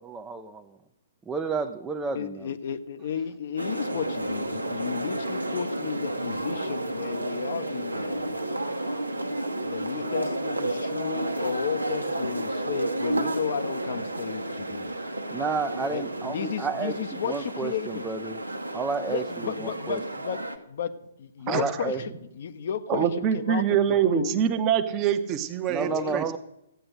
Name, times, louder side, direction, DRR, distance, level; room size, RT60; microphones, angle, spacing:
voice 1, 0.0-0.8 1.3-2.5 15.3-17.0 17.2-18.4 18.7-20.0 21.5-22.0 25.7-26.4, right 4 dB, 10° right, 4 dB, 0.6 m, -31 dB
voice 2, 2.1-8.3 9.6-14.9 15.9-16.0 16.3-18.0 19.1-20.9 21.2-22.0 22.3-24.3 25.8-26.2, left 8 dB, 50° left, 11 dB, 0.8 m, -33 dB
sound 1, 3.6-20.6, right 1 dB, 80° right, 1.1 m, -31 dB
voice 3, 22.9-26.2, right 9 dB, 25° right, 8 dB, 1.0 m, -24 dB
14.5 x 8.8 x 6.4 m, 0.82 s
figure-of-eight pair, 120°, 0 cm